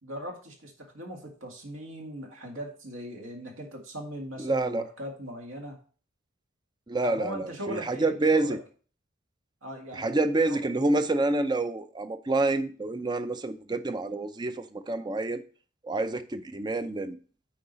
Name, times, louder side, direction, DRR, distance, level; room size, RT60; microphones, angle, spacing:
voice 1, 0.0-5.8 7.0-8.6 9.6-10.1 10.5-10.6, equal, 70° right, 2.0 m, -39 dB
voice 2, 4.4-4.9 6.9-8.6 9.9-15.4 15.8-17.2, right 2 dB, 20° right, 0.4 m, -27 dB
8.7 x 4.8 x 4.0 m
head